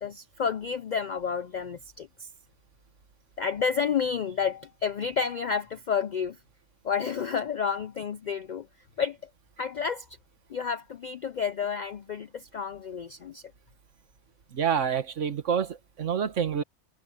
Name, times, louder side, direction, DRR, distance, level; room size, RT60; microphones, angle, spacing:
voice 1, 0.0-2.3 3.4-6.4 6.8-8.7 9.0-9.3 9.6-10.1 10.5-13.5, left 6 dB, 65° left, 0.4 m, -30 dB
voice 2, 14.5-16.6, right 7 dB, 75° right, 1.5 m, -27 dB
omnidirectional pair, 1.3 m